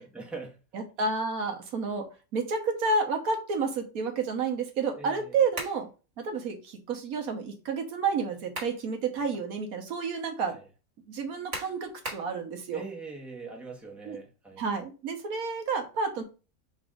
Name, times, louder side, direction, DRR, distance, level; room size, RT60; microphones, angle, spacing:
voice 1, 0.0-0.6 5.0-5.4 10.5-10.7 12.7-14.7, right 3 dB, ahead, 0.9 m, -42 dB
voice 2, 0.7-5.9 6.2-10.6 11.1-12.8 14.1-14.2 14.6-16.2, right 4 dB, 70° right, 1.3 m, -30 dB
sound 1, 5.5-5.8 8.2-8.8 9.3-9.4 11.5-12.3, right 1 dB, 50° right, 1.9 m, -37 dB
4.0 x 2.6 x 4.8 m
omnidirectional pair, 1.6 m